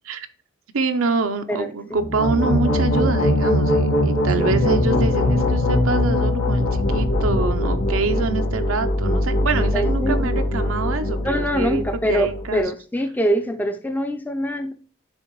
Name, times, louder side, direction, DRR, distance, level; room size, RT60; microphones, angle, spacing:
voice 1, 0.7-12.6, right 4 dB, 85° right, 8 dB, 0.6 m, -26 dB
voice 2, 1.5-2.0 4.4-4.5 9.7-10.3 11.2-14.7, equal, 10° left, 7 dB, 0.4 m, -24 dB
sound 1, 1.9-12.6, left 1 dB, 90° left, 1.5 m, -21 dB
10.5 x 3.5 x 3.0 m, 0.39 s
head